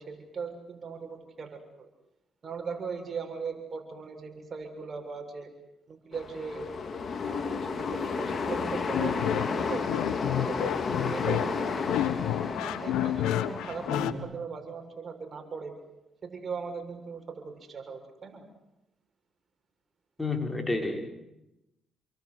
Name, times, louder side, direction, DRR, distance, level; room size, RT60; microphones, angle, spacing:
voice 1, 0.0-1.9 2.4-5.5 5.9-6.7 7.2-9.9 10.3-11.9 12.5-15.7 16.2-18.5, right 5 dB, 45° right, 5 dB, 7.2 m, -39 dB
sound 1, 6.1-14.0, left 5 dB, 45° left, 3.7 m, -32 dB
sound 2, 8.9-14.1, left 12 dB, 90° left, 1.7 m, -30 dB
voice 2, 20.2-21.1, left 3 dB, 15° left, 4 dB, 5.6 m, -30 dB
29.5 x 23.0 x 8.2 m, 0.91 s
supercardioid pair, 70°, 0 cm